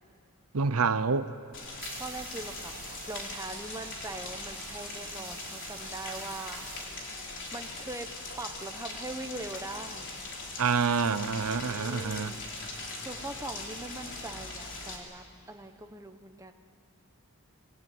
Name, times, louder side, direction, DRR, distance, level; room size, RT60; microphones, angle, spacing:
voice 1, 0.5-1.3 10.6-12.3, right 5 dB, 80° right, 13 dB, 0.8 m, -27 dB
Rain, 1.5-15.0, left 2 dB, 55° left, 4.2 m, -41 dB
sound 1, 1.5-7.5, right 8 dB, 40° right, 2.5 m, -49 dB
voice 2, 2.0-6.6 7.5-8.1 8.4-10.1 11.6-16.5, right 2 dB, 15° right, 6 dB, 1.1 m, -42 dB
26.0 x 22.0 x 9.3 m, 2.3 s
head